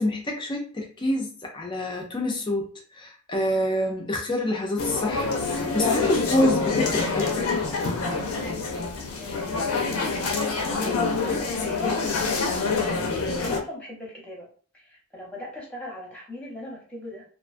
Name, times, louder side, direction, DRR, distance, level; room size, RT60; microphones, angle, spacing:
voice 1, 0.0-7.5 10.9-11.1, left 1 dB, 20° left, 0 dB, 0.4 m, -27 dB
sound 1, 4.8-13.6, left 4 dB, 75° left, 0.5 m, -26 dB
voice 2, 8.7-9.3 10.0-13.1 13.4-14.5 14.7-17.2, left 1 dB, 5° left, -4 dB, 0.8 m, -39 dB
2.4 x 2.2 x 2.5 m, 0.42 s
head